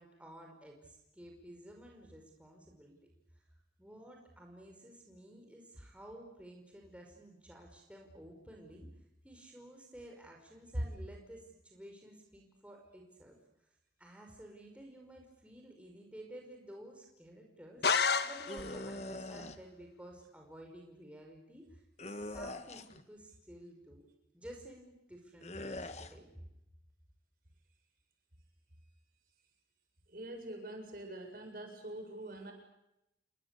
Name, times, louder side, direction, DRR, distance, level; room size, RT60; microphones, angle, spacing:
voice 1, 0.0-3.0 3.4-3.5 3.8-8.9 9.2-13.4 14.0-24.1 24.3-26.4, right 1 dB, 5° right, 1 dB, 5.3 m, -53 dB
sound 1, 17.8-18.9, left 5 dB, 70° left, 1.6 m, -30 dB
sound 2, 18.5-19.6 22.0-23.0 25.4-26.1, left 1 dB, 40° left, 1.6 m, -43 dB
voice 2, 30.1-32.5, right 1 dB, 55° right, 4 dB, 7.8 m, -45 dB
29.5 x 23.5 x 8.4 m, 0.86 s
head